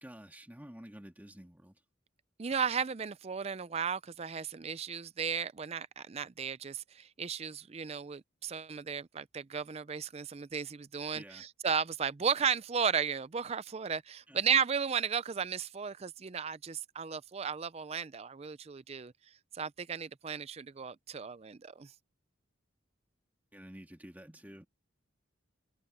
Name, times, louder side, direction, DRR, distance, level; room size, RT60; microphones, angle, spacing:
voice 1, 0.0-1.8 11.1-11.5 14.3-14.4 23.5-24.7, equal, 10° right, 1.7 m, -50 dB
voice 2, 2.4-19.1 19.5-21.9, right 6 dB, 30° right, 0.4 m, -34 dB
head